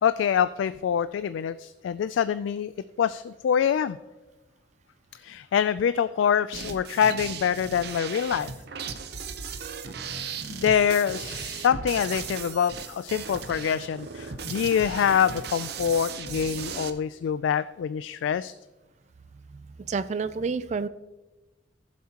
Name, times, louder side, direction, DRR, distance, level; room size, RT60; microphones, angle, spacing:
voice 1, 0.0-2.7 3.0-4.0 5.2-8.5 10.2-18.5, left 8 dB, 85° left, 14 dB, 0.3 m, -25 dB
sound 1, 6.5-16.9, right 6 dB, 60° right, 0.8 m, -37 dB
voice 2, 19.9-20.9, right 4 dB, 40° right, 14 dB, 0.3 m, -28 dB
16.0 x 7.4 x 2.9 m, 1.1 s
head